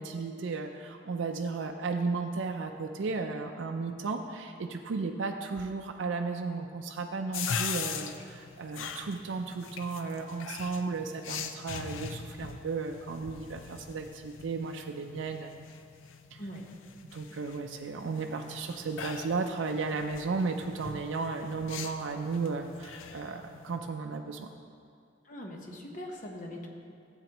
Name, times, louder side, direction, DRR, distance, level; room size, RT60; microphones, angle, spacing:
voice 1, 0.0-15.5 16.3-16.4 17.1-24.5, right 4 dB, 70° right, 3 dB, 0.4 m, -34 dB
sound 1, 7.3-23.8, left 6 dB, 85° left, 0.5 m, -41 dB
voice 2, 25.2-26.7, equal, 40° left, 0 dB, 1.0 m, -41 dB
12.0 x 8.0 x 2.9 m, 2.5 s
head